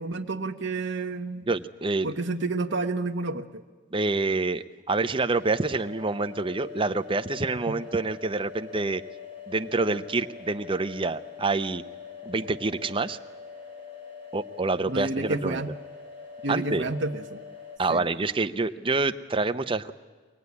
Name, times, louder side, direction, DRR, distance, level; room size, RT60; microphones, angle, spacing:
voice 1, 0.0-1.4 2.0-3.6 14.9-15.7 16.4-17.4 17.9-18.0, right 3 dB, 60° right, 4 dB, 1.1 m, -30 dB
voice 2, 1.5-2.1 3.9-9.0 9.5-11.8 12.2-13.2 14.3-15.6 16.5-16.8 17.8-19.9, right 3 dB, 25° right, 9 dB, 0.7 m, -27 dB
sound 1, 5.4-17.8, left 7 dB, 30° left, 3.2 m, -43 dB
24.0 x 18.0 x 9.6 m, 1.4 s
head